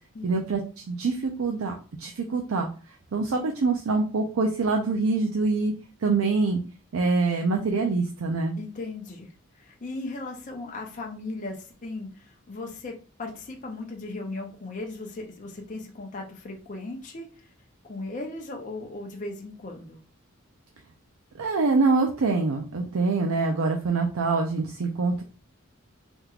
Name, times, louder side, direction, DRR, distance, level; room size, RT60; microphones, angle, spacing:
voice 1, 0.2-1.7 2.0-2.7 3.1-5.7 6.0-6.6 6.9-8.6 21.4-25.2, right 3 dB, 80° right, 2 dB, 0.5 m, -25 dB
voice 2, 8.6-12.9 13.2-17.5 17.8-20.0, left 2 dB, 35° left, 2 dB, 0.5 m, -37 dB
3.5 x 2.9 x 2.4 m, 0.36 s
head